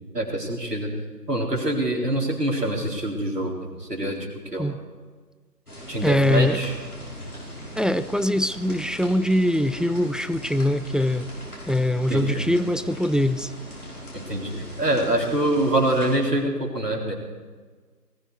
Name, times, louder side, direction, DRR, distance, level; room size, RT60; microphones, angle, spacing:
voice 1, 0.1-0.9 1.3-4.7 5.9-6.7 12.1-12.4 14.1-17.1, right 1 dB, 70° right, 0 dB, 3.9 m, -25 dB
sound 1, 5.7-16.2, equal, 60° left, 5.6 m, -40 dB
voice 2, 6.0-6.6 7.8-11.3 11.7-13.5, left 1 dB, ahead, 13 dB, 0.3 m, -22 dB
19.5 x 14.0 x 4.7 m, 1.5 s
figure-of-eight pair, 165°, 49 cm